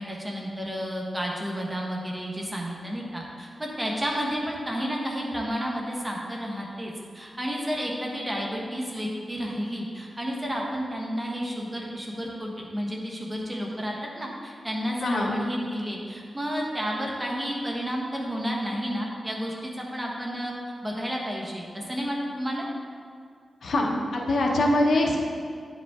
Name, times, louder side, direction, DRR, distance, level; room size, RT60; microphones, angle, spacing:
voice 1, 0.0-20.5 20.8-22.7, equal, 15° right, -2 dB, 1.2 m, -31 dB
voice 2, 15.0-15.3 23.6-25.2, left 1 dB, 70° left, 0 dB, 0.9 m, -23 dB
9.4 x 5.2 x 3.6 m, 2.2 s
wide cardioid pair, 115°, 0 cm